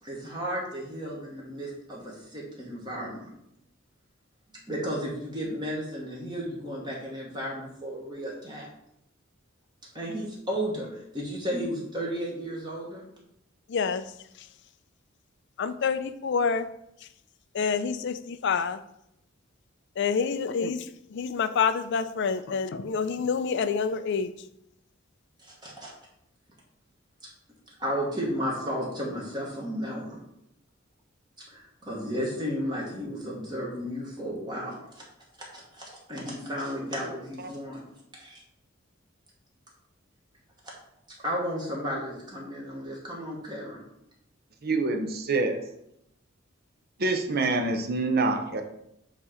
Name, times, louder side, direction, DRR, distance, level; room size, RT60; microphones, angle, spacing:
voice 1, 0.0-3.2 4.7-8.7 9.9-13.0 25.4-25.9 27.8-30.2 31.5-35.0 35.7-37.8 38.1-38.4 41.2-43.8, equal, 20° right, -4 dB, 1.2 m, -33 dB
voice 2, 13.7-14.0 14.4-14.5 15.6-16.7 17.5-18.8 20.0-24.3, left 5 dB, 60° left, 12 dB, 0.4 m, -27 dB
voice 3, 44.6-45.6 47.0-48.6, right 3 dB, 50° right, 5 dB, 0.7 m, -26 dB
7.0 x 2.9 x 4.9 m, 0.78 s
head